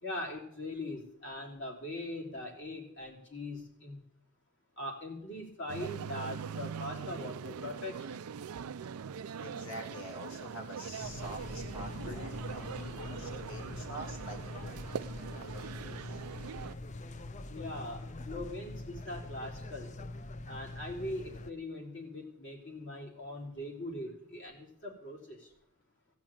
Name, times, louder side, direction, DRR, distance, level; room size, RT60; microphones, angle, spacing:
voice 1, 0.0-4.0 4.8-8.2 17.5-19.9 20.5-25.5, left 1 dB, 55° left, 0 dB, 3.6 m, -41 dB
sound 1, 5.7-16.8, right 7 dB, 90° right, 0.4 m, -42 dB
voice 2, 9.4-14.9 15.4-16.2, equal, 70° left, 2 dB, 3.3 m, -46 dB
sound 2, 11.0-21.5, left 2 dB, 35° left, 0.5 m, -43 dB
16.0 x 6.1 x 8.8 m, 0.72 s
head